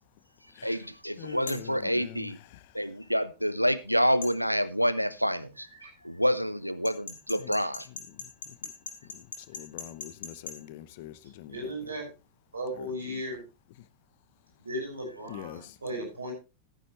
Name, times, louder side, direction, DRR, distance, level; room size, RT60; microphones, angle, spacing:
voice 1, 0.6-2.4 2.7-5.7 6.0-7.9, equal, 90° left, 0.6 m, -27 dB
voice 2, 1.2-2.3 7.4-7.5 9.5-11.5 15.3-15.6, left 13 dB, 50° left, 0.8 m, -43 dB
sound 1, 1.5-1.7 4.2-4.4 6.8-10.6, left 5 dB, 65° left, 2.8 m, -40 dB
voice 3, 11.5-12.1 12.5-13.4 14.6-16.3, equal, 75° right, 5.6 m, -36 dB
14.0 x 9.7 x 3.1 m
figure-of-eight pair, 90°, 0 cm